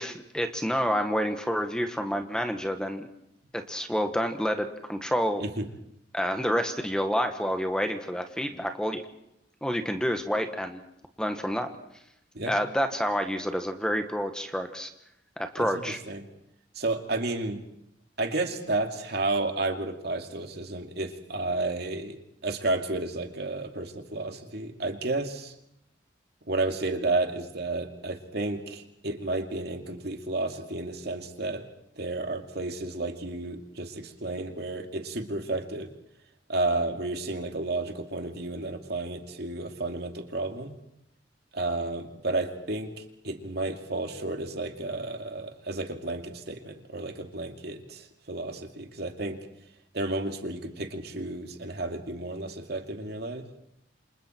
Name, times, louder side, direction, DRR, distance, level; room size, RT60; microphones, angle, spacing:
voice 1, 0.0-3.1 3.5-5.4 6.1-9.0 9.6-10.8 11.2-11.7 12.5-14.9 15.4-16.0, equal, 5° left, 6 dB, 1.4 m, -28 dB
voice 2, 16.7-17.6 18.2-22.2 22.4-25.5 26.5-31.6 32.0-35.9 36.5-40.7 41.5-49.4 49.9-53.5, right 2 dB, 55° right, 5 dB, 2.5 m, -32 dB
29.0 x 26.5 x 4.5 m, 0.77 s
head